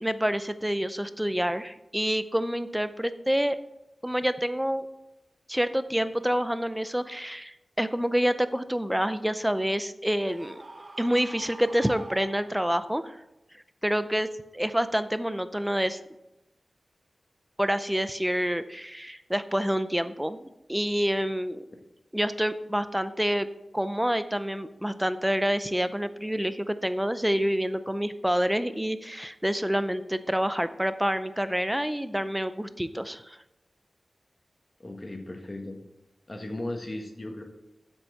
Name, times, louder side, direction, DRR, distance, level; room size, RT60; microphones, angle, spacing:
voice 1, 0.0-3.6 4.0-4.9 5.5-10.6 11.0-13.2 13.8-14.3 14.5-16.0 17.6-21.6 22.1-23.5 23.7-33.4, equal, 5° right, 12 dB, 0.5 m, -27 dB
Screaming, 10.3-13.0, right 2 dB, 35° right, 0.9 m, -45 dB
voice 2, 34.8-35.8 36.3-37.4, left 1 dB, 30° left, 3 dB, 1.6 m, -36 dB
7.8 x 6.3 x 6.4 m, 0.96 s
wide cardioid pair, 105°, 0 cm